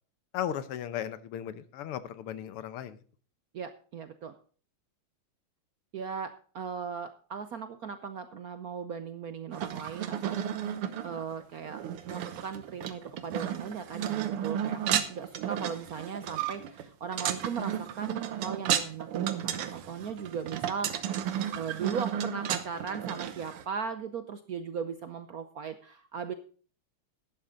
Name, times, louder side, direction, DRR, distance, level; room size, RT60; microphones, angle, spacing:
voice 1, 0.3-3.0, left 10 dB, 90° left, 14 dB, 1.8 m, -36 dB
voice 2, 3.5-4.3 5.9-10.7 11.0-19.1 19.4-26.3, right 6 dB, 65° right, 10 dB, 0.9 m, -38 dB
sound 1, 9.5-23.6, right 10 dB, 85° right, 1.9 m, -33 dB
12.0 x 10.0 x 3.8 m, 0.41 s
omnidirectional pair, 2.4 m